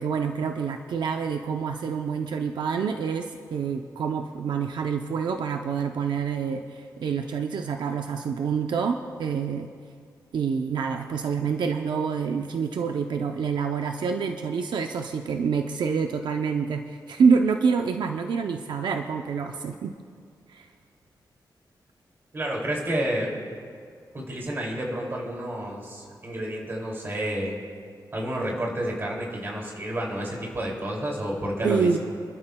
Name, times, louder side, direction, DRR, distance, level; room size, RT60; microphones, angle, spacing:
voice 1, 0.0-9.7 10.3-19.9 20.5-20.7 31.6-32.0, right 6 dB, 80° right, 5 dB, 0.6 m, -27 dB
voice 2, 22.3-23.3 24.1-27.6 28.1-32.0, right 1 dB, 30° right, -2 dB, 2.5 m, -30 dB
28.5 x 12.0 x 2.2 m, 2.2 s
wide cardioid pair, 155°, 8 cm